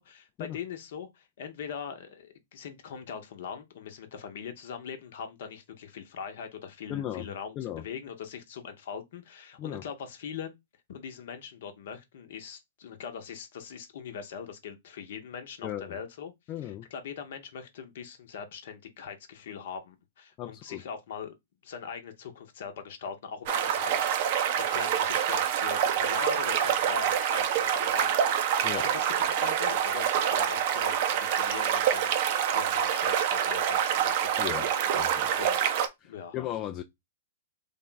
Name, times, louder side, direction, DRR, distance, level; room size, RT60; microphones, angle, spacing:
voice 1, 0.0-10.5 10.9-16.3 16.6-21.3 21.6-35.7 36.1-36.4, left 7 dB, 60° left, 0.8 m, -41 dB
voice 2, 6.9-7.3 7.6-7.8 9.6-9.8 15.6-16.0 16.5-16.9 20.4-20.8 28.6-28.8 34.4-34.7 34.9-35.3 36.0-36.8, left 12 dB, 30° left, 0.4 m, -36 dB
sound 1, 23.5-35.9, right 9 dB, 50° right, 0.6 m, -26 dB
3.5 x 2.3 x 3.8 m
hypercardioid pair, 115°, 0 cm